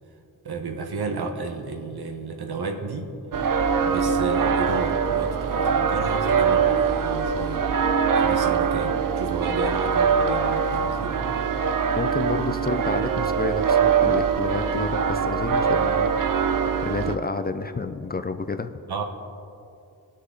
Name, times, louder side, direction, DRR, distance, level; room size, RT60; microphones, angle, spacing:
voice 1, 0.4-3.1 3.8-7.6 8.2-11.2 18.9-19.0, right 4 dB, 90° right, 4 dB, 1.2 m, -32 dB
sound 1, 3.3-17.2, right 6 dB, 60° right, 0.6 m, -23 dB
voice 2, 11.9-16.1 16.8-18.7, left 4 dB, 25° left, 10 dB, 0.4 m, -30 dB
19.5 x 6.5 x 3.9 m, 2.6 s
wide cardioid pair, 150°, 37 cm